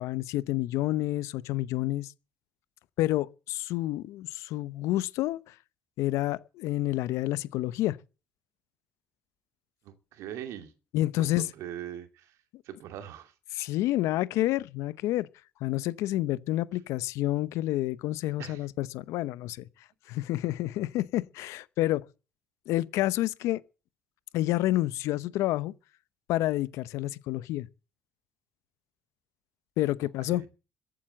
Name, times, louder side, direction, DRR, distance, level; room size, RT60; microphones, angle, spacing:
voice 1, 0.0-2.1 3.0-5.5 6.0-8.0 10.9-11.5 13.5-15.3 15.6-19.7 20.1-22.0 22.7-23.6 24.3-25.7 26.3-27.7 29.8-30.4, left 15 dB, 75° left, 0.8 m, -29 dB
voice 2, 9.8-10.7 11.1-12.4 12.6-13.3 18.4-18.7 30.0-30.5, right 11 dB, 75° right, 2.4 m, -42 dB
14.5 x 8.9 x 7.8 m
supercardioid pair, 75°, 5 cm